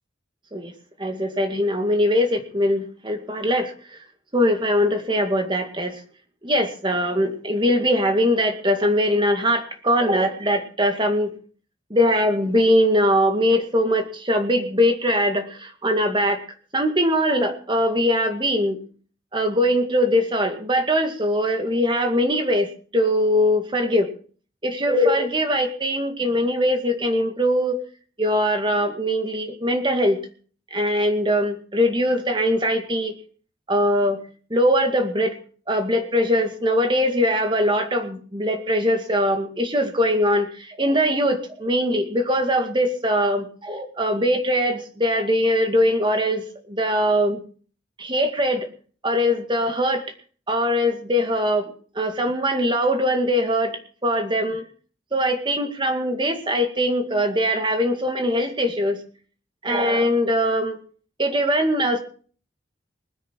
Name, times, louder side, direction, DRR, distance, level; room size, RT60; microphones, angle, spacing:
voice 1, 1.0-3.7 4.3-6.0 6.4-11.3 11.9-16.4 16.7-18.8 19.3-24.1 24.6-27.8 28.2-30.2 30.7-33.2 33.7-34.2 34.5-35.4 35.7-47.4 48.0-48.7 49.0-50.0 50.5-53.7 54.0-54.6 55.1-59.0 59.6-60.8 61.2-62.0, equal, 25° right, 5 dB, 2.1 m, -21 dB
20.5 x 9.9 x 4.7 m, 0.42 s
head